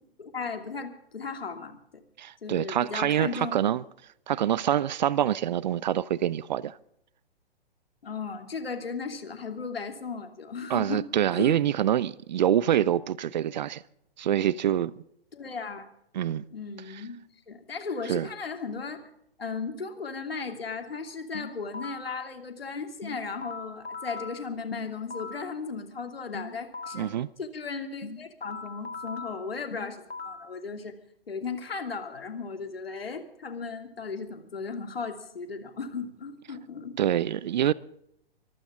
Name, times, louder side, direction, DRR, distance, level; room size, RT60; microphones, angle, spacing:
voice 1, 0.2-2.0 2.4-3.5 8.0-11.0 11.3-11.6 15.3-15.9 16.5-17.2 17.5-19.0 19.4-27.1 27.4-31.0 31.3-36.9, left 5 dB, 70° left, 3.0 m, -36 dB
voice 2, 2.2-3.8 4.3-6.8 10.7-13.8 14.2-14.9 16.1-16.4 18.1-18.3 26.9-27.3 37.0-37.7, right 10 dB, 45° right, 0.7 m, -25 dB
sound 1, 21.3-22.2 23.0-25.6 26.3-27.2 28.0-30.6, left 3 dB, 90° left, 1.5 m, -40 dB
24.0 x 15.5 x 3.8 m
figure-of-eight pair, 120°, 31 cm